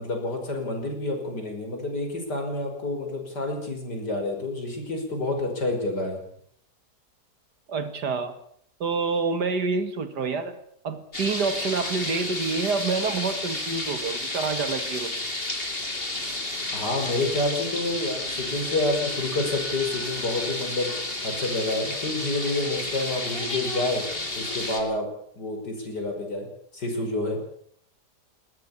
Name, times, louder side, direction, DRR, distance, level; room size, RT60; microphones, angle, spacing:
voice 1, 0.0-6.2 16.7-20.9 21.2-24.1 24.4-25.1 25.3-26.5 26.7-27.4, left 2 dB, 85° left, 3 dB, 6.1 m, -28 dB
voice 2, 7.7-8.4 8.8-10.6 10.8-15.2, right 4 dB, 80° right, 10 dB, 2.5 m, -27 dB
sound 1, 11.1-24.8, left 2 dB, 35° left, 3.5 m, -31 dB
20.5 x 17.5 x 8.6 m, 0.66 s
omnidirectional pair, 1.8 m